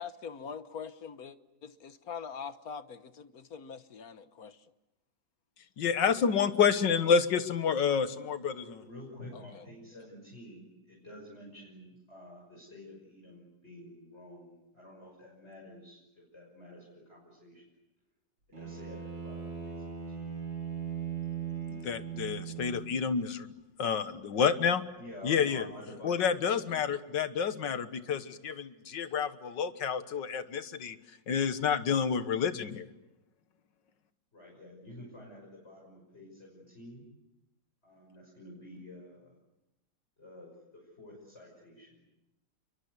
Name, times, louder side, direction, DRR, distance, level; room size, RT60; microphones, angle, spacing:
voice 1, 0.0-1.4 1.6-4.6 9.3-9.6, left 6 dB, 55° left, 1.5 m, -43 dB
voice 2, 5.8-8.6 21.7-23.5 23.8-24.8 25.2-25.6 26.0-31.0 31.3-32.9, left 6 dB, 75° left, 2.0 m, -29 dB
voice 3, 8.5-17.6 18.5-20.3 25.0-26.1 34.3-37.0 37.8-39.4 40.2-42.0, left 1 dB, 35° left, 6.5 m, -50 dB
Bowed string instrument, 18.5-23.0, right 7 dB, 85° right, 8.0 m, -39 dB
29.5 x 23.5 x 8.2 m
omnidirectional pair, 2.0 m